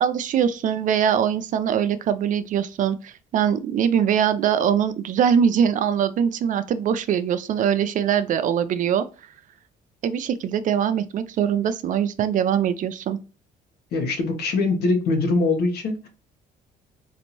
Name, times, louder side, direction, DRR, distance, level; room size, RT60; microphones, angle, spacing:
voice 1, 0.0-9.0 10.0-13.2, right 8 dB, 50° right, 0.4 m, -22 dB
voice 2, 13.9-16.1, left 3 dB, 70° left, 1.0 m, -22 dB
4.1 x 2.6 x 2.9 m
cardioid pair, 110°, 17 cm